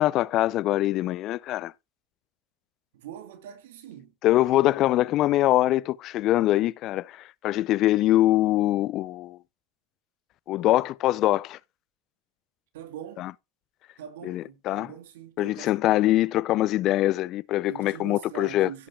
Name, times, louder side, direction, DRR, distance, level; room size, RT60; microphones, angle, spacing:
voice 1, 0.0-1.7 4.2-9.4 10.5-11.6 13.2-13.3 14.3-14.9 15.4-18.9, left 15 dB, 50° left, 0.5 m, -23 dB
voice 2, 2.9-4.8 12.7-13.3 14.0-15.7 17.7-18.9, right 10 dB, 85° right, 2.2 m, -43 dB
16.5 x 5.6 x 2.3 m
supercardioid pair, 115°, 0 cm